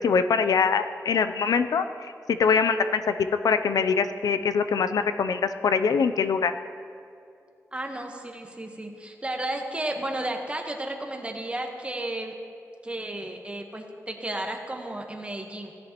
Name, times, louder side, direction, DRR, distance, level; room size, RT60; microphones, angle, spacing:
voice 1, 0.0-3.1 3.4-6.5, left 5 dB, 90° left, 10 dB, 0.4 m, -23 dB
voice 2, 7.7-12.3 12.8-15.7, right 1 dB, 20° right, 2 dB, 1.1 m, -33 dB
16.0 x 10.5 x 3.0 m, 2.5 s
wide cardioid pair, 100°, 6 cm